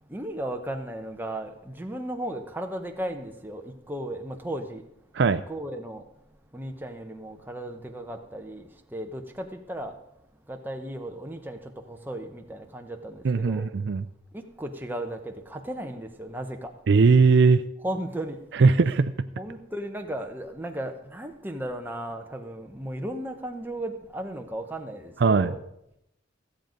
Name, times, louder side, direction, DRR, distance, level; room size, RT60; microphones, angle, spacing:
voice 1, 0.0-4.8 5.2-6.0 6.5-10.0 10.5-13.7 14.3-16.7 17.8-18.4 19.4-25.6, right 1 dB, 10° right, 0.9 m, -35 dB
voice 2, 13.2-14.1 16.9-17.6 18.6-19.1 25.2-25.5, right 4 dB, 60° right, 0.4 m, -19 dB
14.5 x 7.8 x 5.2 m
head